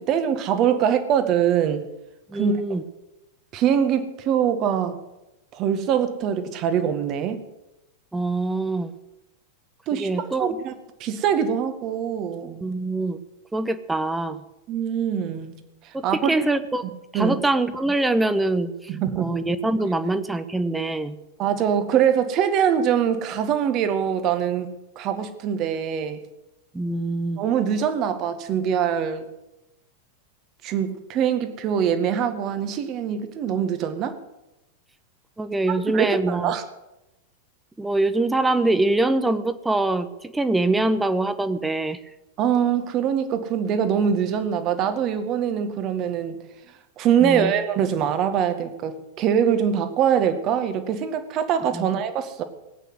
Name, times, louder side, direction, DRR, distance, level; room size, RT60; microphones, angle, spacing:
voice 1, 0.0-1.9 2.4-2.8 3.5-5.0 5.5-7.4 9.9-10.7 11.0-12.6 14.7-15.6 16.0-16.3 17.1-17.4 18.9-19.4 21.4-26.2 27.4-29.3 30.6-34.2 35.9-36.6 42.4-46.4 47.0-52.4, right 8 dB, 35° right, 9 dB, 1.9 m, -23 dB
voice 2, 2.3-2.8 8.1-8.9 9.9-10.5 12.6-13.2 13.5-14.4 15.9-16.8 17.1-18.9 19.2-21.2 26.7-27.4 35.4-36.5 37.8-42.0 47.2-47.5 51.7-51.9, right 2 dB, 10° right, 12 dB, 1.1 m, -24 dB
18.5 x 9.1 x 7.9 m, 0.95 s
figure-of-eight pair, 90°, 0 cm